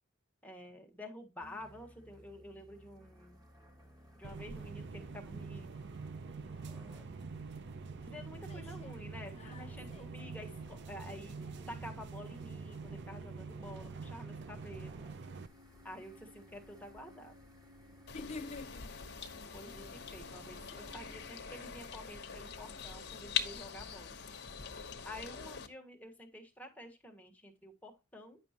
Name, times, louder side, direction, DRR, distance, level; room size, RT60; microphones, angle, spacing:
voice 1, 0.4-3.4 4.2-5.9 6.7-7.0 8.0-15.0 15.8-17.3 19.5-24.1 25.0-28.4, left 1 dB, 10° left, 1.4 m, -50 dB
sound 1, 1.4-21.3, equal, 20° right, 1.9 m, -58 dB
sound 2, 4.2-15.5, right 4 dB, 60° right, 0.5 m, -45 dB
voice 2, 8.5-9.0 9.4-10.1 18.1-19.2 21.4-21.7, left 3 dB, 30° left, 0.6 m, -48 dB
sound 3, 18.1-25.7, left 7 dB, 55° left, 1.1 m, -42 dB
9.3 x 6.1 x 2.9 m
head